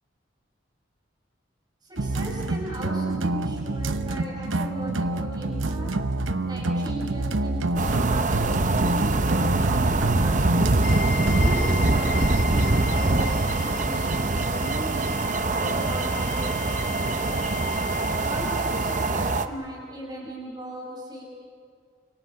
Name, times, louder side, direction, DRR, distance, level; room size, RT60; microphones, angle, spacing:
voice 1, 1.8-5.9 6.4-10.8 11.3-17.4 18.2-21.2, equal, 20° right, -1 dB, 5.7 m, -37 dB
sound 1, 2.0-11.4, right 2 dB, 85° right, 0.9 m, -27 dB
sound 2, 7.8-19.5, right 2 dB, 40° right, 0.8 m, -24 dB
sound 3, 10.8-19.1, left 6 dB, 70° left, 3.3 m, -37 dB
29.5 x 26.0 x 5.8 m, 2.1 s
head